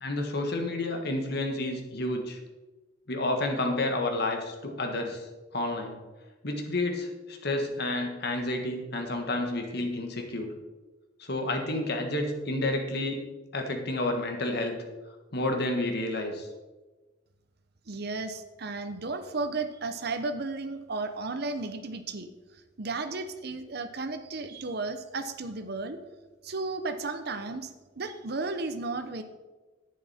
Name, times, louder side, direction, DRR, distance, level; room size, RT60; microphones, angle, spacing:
voice 1, 0.0-2.4 3.1-5.2 5.5-6.0 6.4-10.5 11.2-13.2 13.5-14.8 15.3-16.5, left 2 dB, 60° left, 3 dB, 1.7 m, -30 dB
voice 2, 17.9-22.3 22.8-26.0 26.4-29.2, right 3 dB, 60° right, 8 dB, 0.8 m, -34 dB
11.0 x 9.3 x 4.3 m, 1.2 s
head